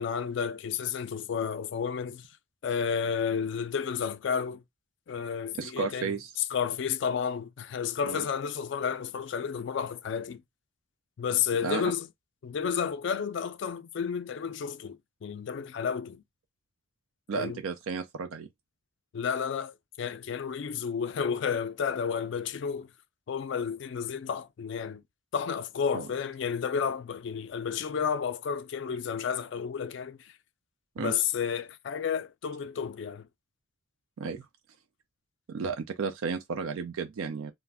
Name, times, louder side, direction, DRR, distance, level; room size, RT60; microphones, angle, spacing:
voice 1, 0.0-2.3 2.6-4.6 5.1-10.4 11.2-12.1 12.4-16.2 17.3-17.6 19.1-22.9 23.3-25.0 25.3-30.3 31.0-33.3, left 7 dB, 60° left, 0.3 m, -31 dB
voice 2, 5.6-6.3 8.1-8.2 11.6-11.9 17.3-18.5 25.9-26.1 31.0-31.1 34.2-34.5 35.5-37.5, right 5 dB, 85° right, 0.4 m, -33 dB
2.4 x 2.1 x 3.3 m
head